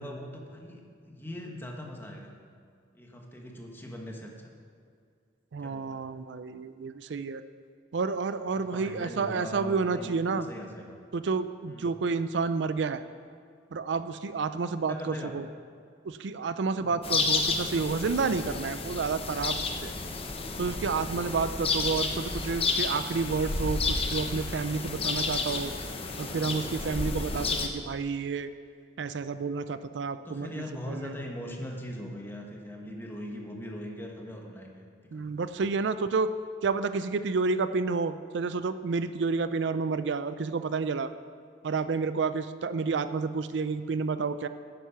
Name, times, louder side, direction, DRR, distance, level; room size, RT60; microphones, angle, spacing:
voice 1, 0.0-2.3 2.9-4.5 5.6-6.0 8.7-11.0 11.7-11.9 14.9-15.3 16.7-17.1 30.2-34.9 35.1-35.5, equal, 10° left, 1 dB, 1.3 m, -41 dB
voice 2, 5.5-7.4 7.9-10.5 11.1-13.0 13.7-15.5 16.1-19.9 20.6-25.7 26.2-28.5 29.0-31.1 35.1-36.3 36.6-41.1 41.6-44.5, right 4 dB, 75° right, 12 dB, 0.4 m, -30 dB
sound 1, 17.0-27.7, left 3 dB, 30° left, 0.9 m, -31 dB
10.5 x 9.2 x 5.8 m, 2.3 s
head